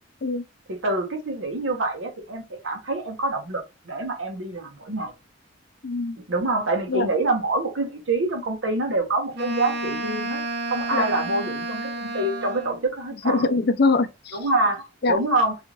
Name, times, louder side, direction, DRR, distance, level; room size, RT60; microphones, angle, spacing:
voice 1, 0.7-5.1 6.3-10.4 10.7-13.5 14.3-15.6, right 2 dB, 80° right, 1.0 m, -26 dB
voice 2, 5.8-6.2 6.9-7.1 10.9-11.1 13.2-14.4 15.0-15.2, left 3 dB, 55° left, 0.5 m, -22 dB
Wind instrument woodwind instrument, 9.3-12.9, right 2 dB, 55° right, 0.8 m, -31 dB
3.4 x 2.4 x 3.0 m
head